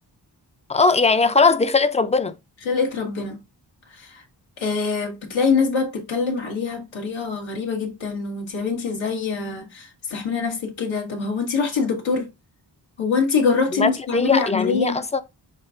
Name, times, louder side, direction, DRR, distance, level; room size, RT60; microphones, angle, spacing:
voice 1, 0.7-2.4 13.7-15.2, left 4 dB, 15° left, 0.4 m, -19 dB
voice 2, 2.7-3.4 4.0-4.2 4.6-12.3 13.0-15.0, left 5 dB, 90° left, 1.2 m, -24 dB
6.2 x 2.4 x 2.4 m
cardioid pair, 60°, 45 cm